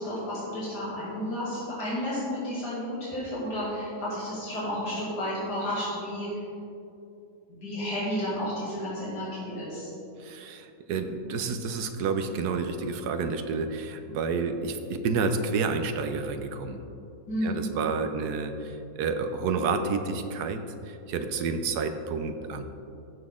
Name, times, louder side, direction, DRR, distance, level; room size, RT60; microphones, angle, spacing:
voice 1, 0.0-6.3 7.5-9.9 17.3-17.6, equal, 85° left, -9 dB, 2.8 m, -32 dB
voice 2, 10.2-16.8 17.4-20.6 20.8-22.6, right 4 dB, 75° right, 8 dB, 1.3 m, -30 dB
14.5 x 6.1 x 3.7 m, 2.7 s
omnidirectional pair, 1.7 m